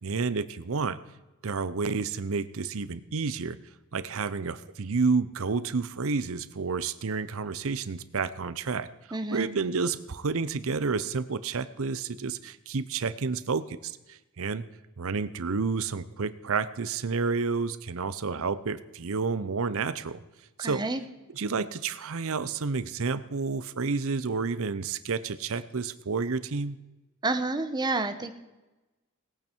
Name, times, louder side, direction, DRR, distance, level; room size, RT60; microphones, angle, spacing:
voice 1, 0.0-1.0 1.4-3.6 3.9-8.9 9.3-14.6 15.0-20.2 20.6-20.8 21.4-26.8, right 4 dB, 65° right, 14 dB, 0.7 m, -30 dB
voice 2, 9.1-9.5 20.6-21.0 27.2-28.3, right 2 dB, 20° right, 8 dB, 0.9 m, -29 dB
19.0 x 8.9 x 4.5 m, 1.1 s
head